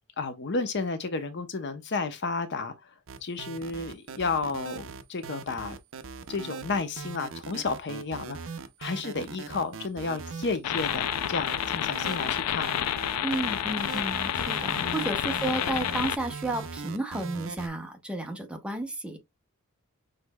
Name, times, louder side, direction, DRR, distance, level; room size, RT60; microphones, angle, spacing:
voice 1, 0.2-2.7 3.2-5.8 6.3-8.4 8.8-12.8 14.8-15.1, left 4 dB, 50° left, 0.7 m, -32 dB
sound 1, 3.1-17.7, right 5 dB, 60° right, 0.6 m, -40 dB
sound 2, 10.6-16.2, left 11 dB, 85° left, 0.4 m, -29 dB
voice 2, 13.2-19.2, right 2 dB, 5° right, 0.8 m, -32 dB
6.3 x 3.2 x 2.2 m
head